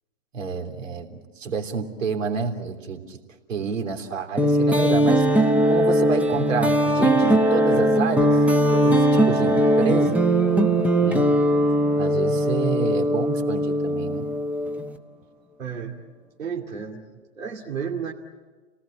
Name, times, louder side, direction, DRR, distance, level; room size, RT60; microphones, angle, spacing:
voice 1, 0.3-3.2 3.5-8.4 8.7-10.2 11.0-11.3 12.0-14.3, right 5 dB, 75° right, 5 dB, 3.5 m, -29 dB
sound 1, 4.4-15.0, right 1 dB, 5° right, 0.9 m, -20 dB
voice 2, 15.6-16.0 16.4-18.1, right 7 dB, 90° right, -1 dB, 2.7 m, -32 dB
30.0 x 19.0 x 8.8 m, 1.3 s
hypercardioid pair, 130°, 39 cm